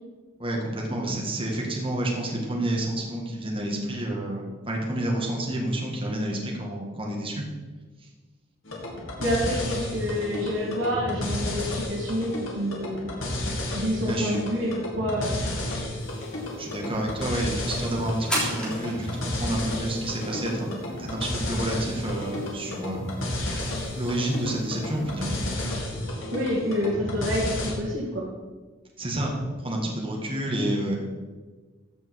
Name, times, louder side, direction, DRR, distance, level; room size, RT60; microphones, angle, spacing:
voice 1, 0.4-7.4 14.0-14.4 16.6-20.7 21.0-23.0 23.5-23.7 23.9-25.3 29.0-29.3 29.6-31.0, right 1 dB, 25° right, -1 dB, 1.9 m, -29 dB
sound 1, 8.6-27.7, left 1 dB, 80° left, 2.4 m, -32 dB
voice 2, 9.2-13.1 13.7-15.4 26.3-28.3, equal, 70° right, -5 dB, 2.0 m, -28 dB
sound 2, 16.0-25.5, equal, 5° left, 3.3 m, -39 dB
14.5 x 5.3 x 4.7 m, 1.3 s
head